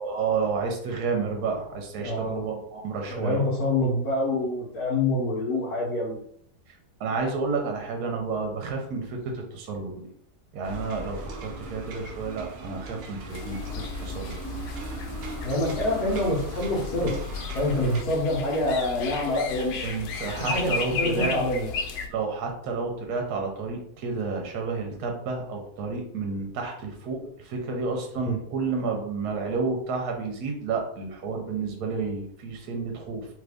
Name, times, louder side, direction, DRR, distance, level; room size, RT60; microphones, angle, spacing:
voice 1, 0.0-3.4 7.0-10.1 10.5-13.7 14.0-14.4 19.8-21.4 22.1-33.3, right 4 dB, 70° right, 2 dB, 1.2 m, -30 dB
voice 2, 2.0-2.4 3.1-6.2 15.4-17.1 17.5-19.8 20.4-20.7 21.0-21.7 28.3-28.4, left 1 dB, 65° left, -6 dB, 1.3 m, -26 dB
sound 1, 10.6-18.0, equal, 85° right, 0.5 m, -37 dB
sound 2, 13.3-22.1, left 4 dB, 90° left, 1.2 m, -35 dB
3.1 x 2.5 x 3.4 m, 0.66 s
omnidirectional pair, 1.8 m